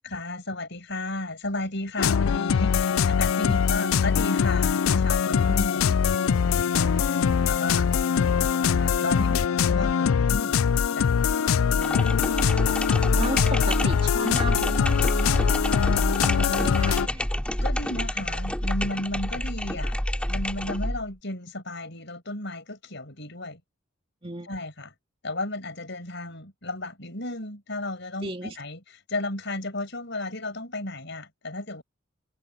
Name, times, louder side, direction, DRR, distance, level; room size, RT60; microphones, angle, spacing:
voice 1, 0.0-5.8 6.5-7.0 7.5-7.9 8.6-10.6 10.9-11.1 11.8-12.1 16.3-17.1 17.6-20.0 20.3-23.6 24.4-24.9 25.2-28.8 29.1-31.8, left 2 dB, 60° left, 7.0 m, -34 dB
sound 1, 2.0-17.1, left 7 dB, 85° left, 0.4 m, -23 dB
sound 2, 11.7-21.0, equal, 5° left, 2.7 m, -28 dB
voice 2, 12.0-12.5 13.2-16.0 16.4-17.3 24.2-24.5 28.2-28.6, right 1 dB, 25° right, 2.4 m, -35 dB
head